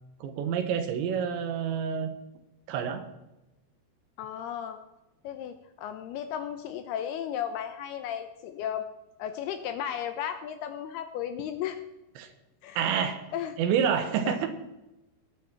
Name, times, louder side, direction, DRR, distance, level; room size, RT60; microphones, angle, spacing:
voice 1, 0.2-2.2 2.7-3.0 12.2-12.3 12.8-13.2 13.6-14.5, right 8 dB, 80° right, 8 dB, 3.6 m, -28 dB
voice 2, 4.2-4.8 5.2-8.9 9.2-11.8 12.6-12.8 13.3-13.6 14.2-14.4, left 9 dB, 80° left, 9 dB, 2.4 m, -34 dB
19.5 x 10.5 x 4.5 m, 0.98 s
omnidirectional pair, 5.2 m